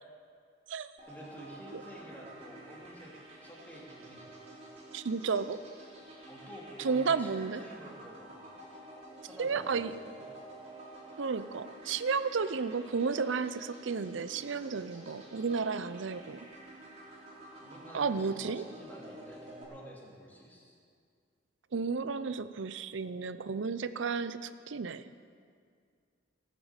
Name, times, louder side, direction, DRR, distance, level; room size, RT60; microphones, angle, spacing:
sound 1, 1.0-19.6, right 2 dB, 30° right, 3.4 m, -50 dB
voice 1, 1.1-3.1 3.4-4.2 6.3-8.3 9.3-10.2 17.6-20.8, equal, 10° left, -4 dB, 2.7 m, -50 dB
voice 2, 4.9-5.6 6.8-7.6 9.4-9.9 11.2-16.4 17.9-18.6 21.7-25.0, right 5 dB, 70° right, 13 dB, 0.5 m, -32 dB
18.0 x 7.6 x 8.1 m, 2.2 s
head